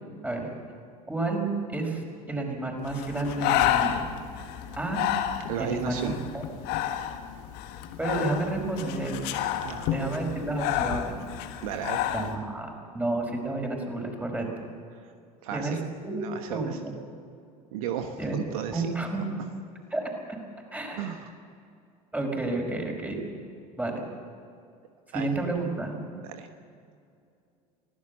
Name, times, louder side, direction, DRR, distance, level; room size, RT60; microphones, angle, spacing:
voice 1, 1.1-4.0 4.7-5.0 5.6-6.0 6.3-6.4 8.0-9.2 9.9-11.1 12.1-14.5 15.5-15.8 16.0-16.2 16.5-16.9 18.2-18.4 18.7-19.2 19.9-20.1 20.7-21.1 22.1-23.2 23.8-24.0 25.1-25.9, right 2 dB, 10° right, 2 dB, 5.5 m, -30 dB
Breathing, 2.9-12.3, left 11 dB, 60° left, 1.5 m, -30 dB
voice 2, 5.5-6.2 9.6-10.0 11.6-12.0 14.9-15.1 15.4-15.8 16.2-16.8 17.7-18.9 21.0-21.2 25.1-25.3 26.1-26.5, right 9 dB, 70° right, 7 dB, 1.3 m, -34 dB
25.0 x 16.5 x 7.2 m, 2.5 s
figure-of-eight pair, 65°, 19 cm